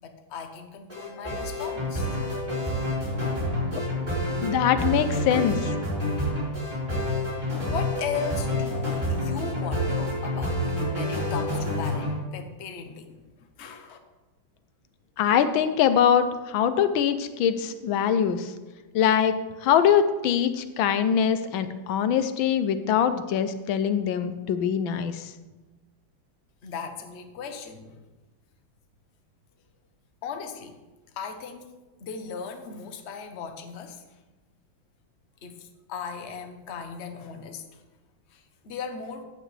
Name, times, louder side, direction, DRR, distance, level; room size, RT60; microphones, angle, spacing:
voice 1, 0.0-2.1 7.7-13.2 13.6-14.0 26.6-28.0 30.2-30.8 31.1-34.0 35.4-37.6 38.3-39.2, left 6 dB, 45° left, 6 dB, 1.0 m, -37 dB
sound 1, 0.9-12.2, left 1 dB, 20° right, 4.6 m, -28 dB
voice 2, 4.4-5.7 15.2-18.5 18.9-19.3 19.6-25.3, left 8 dB, 80° left, 10 dB, 1.5 m, -23 dB
14.5 x 8.8 x 3.3 m, 1.2 s
omnidirectional pair, 2.2 m